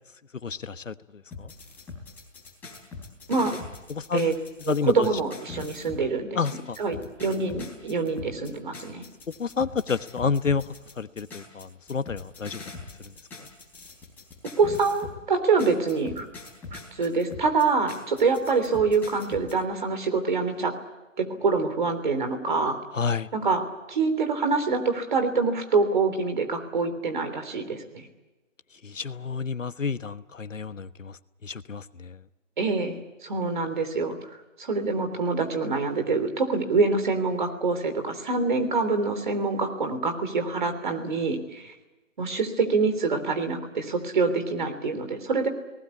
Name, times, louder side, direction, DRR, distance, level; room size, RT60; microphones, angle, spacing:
voice 1, 0.4-1.5 3.9-4.3 4.6-5.1 6.3-6.8 9.4-10.6 11.0-12.6 13.0-13.1 13.4-13.5 22.9-23.3 28.8-32.2, left 5 dB, 75° left, 13 dB, 1.3 m, -30 dB
sound 1, 1.3-6.1 6.4-15.2 15.6-19.6, left 4 dB, 5° left, 3.9 m, -42 dB
voice 2, 4.7-6.4 6.8-9.0 14.6-16.3 16.7-20.7 21.2-22.8 23.3-28.1 32.6-34.2 34.6-41.7 42.2-45.5, right 4 dB, 40° right, 7 dB, 3.4 m, -25 dB
28.5 x 19.0 x 8.4 m, 1.1 s
figure-of-eight pair, 165°, 38 cm